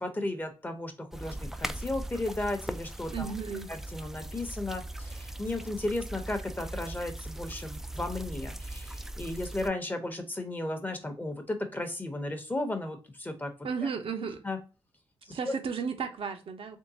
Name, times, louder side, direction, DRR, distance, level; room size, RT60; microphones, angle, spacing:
voice 1, 0.0-3.3 3.7-13.5 14.4-14.6 15.5-15.6, left 2 dB, 20° left, 0.8 m, -34 dB
sound 1, 1.1-9.7, right 1 dB, 5° right, 0.3 m, -39 dB
voice 2, 3.1-3.7 13.6-14.4 15.3-16.8, right 6 dB, 70° right, 0.7 m, -34 dB
3.6 x 3.4 x 2.7 m
wide cardioid pair, 95°, 10 cm